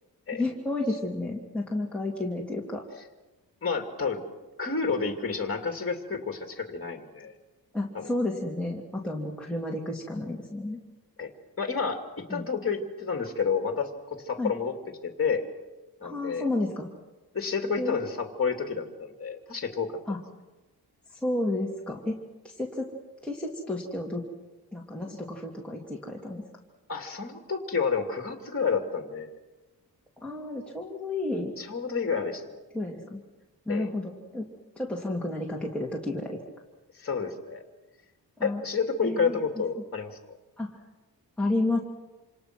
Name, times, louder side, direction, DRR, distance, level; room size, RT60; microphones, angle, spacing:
voice 1, 0.3-2.9 7.7-10.8 12.3-12.4 14.4-14.5 16.0-16.9 17.8-18.0 20.1-20.2 21.1-22.2 22.4-22.9 23.2-24.2 24.7-26.4 30.2-31.5 32.7-33.2 33.7-34.5 34.8-36.4 38.4-38.6 39.0-39.4 40.6-40.8 41.4-41.8, left 2 dB, 5° left, -3 dB, 2.8 m, -31 dB
voice 2, 3.6-4.2 4.6-7.3 7.9-8.1 11.2-11.3 11.6-14.7 15.0-15.4 16.0-16.5 17.3-20.0 26.9-29.3 31.6-32.6 33.7-33.9 36.9-37.6 38.4-40.2, left 5 dB, 35° left, 4 dB, 2.7 m, -30 dB
27.5 x 27.5 x 6.1 m, 1.1 s
wide cardioid pair, 135°, 39 cm